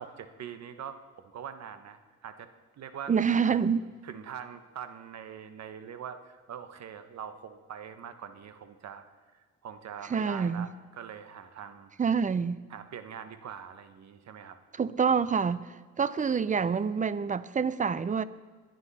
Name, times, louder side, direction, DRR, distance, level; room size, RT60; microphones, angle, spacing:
voice 1, 0.0-2.5 2.8-3.6 4.0-9.1 9.3-11.9 12.7-14.6 15.0-15.2, right 8 dB, 60° right, 1.2 m, -43 dB
voice 2, 3.1-3.9 10.1-10.7 12.0-12.6 14.8-18.2, right 6 dB, 25° right, 0.5 m, -27 dB
21.0 x 11.0 x 4.2 m
cardioid pair, 90°, 30 cm